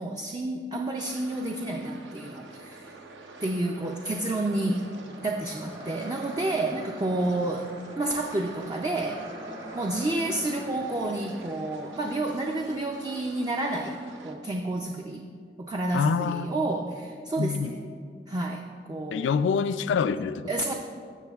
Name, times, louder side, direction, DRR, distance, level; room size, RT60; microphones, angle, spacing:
voice 1, 0.0-2.9 3.4-4.9 5.2-9.2 9.7-15.2 15.6-17.8 18.3-19.4 20.5-20.7, right 2 dB, 25° right, 2 dB, 0.4 m, -30 dB
sound 1, 0.9-14.3, right 3 dB, 75° right, 0.7 m, -49 dB
sound 2, 2.9-14.3, right 1 dB, 55° right, 1.4 m, -45 dB
voice 2, 15.9-16.6 17.4-17.7 19.1-20.5, left 6 dB, 85° left, 14 dB, 0.3 m, -26 dB
14.0 x 6.4 x 2.3 m, 2.2 s
head